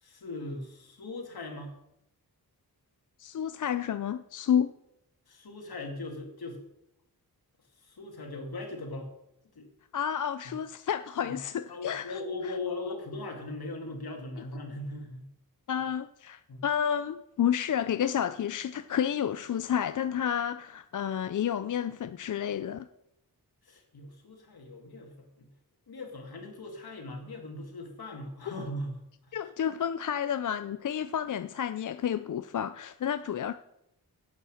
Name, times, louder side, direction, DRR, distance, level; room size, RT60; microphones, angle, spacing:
voice 1, 0.0-1.7 5.3-6.6 7.8-9.1 9.5-9.7 11.2-11.4 11.7-15.3 16.5-16.6 23.6-25.5 25.9-29.4, left 2 dB, 80° left, 2.4 m, -39 dB
voice 2, 3.2-4.7 9.9-12.5 15.7-22.9 29.3-33.5, left 9 dB, 55° left, 0.4 m, -30 dB
9.7 x 8.3 x 6.5 m
wide cardioid pair, 105°, 37 cm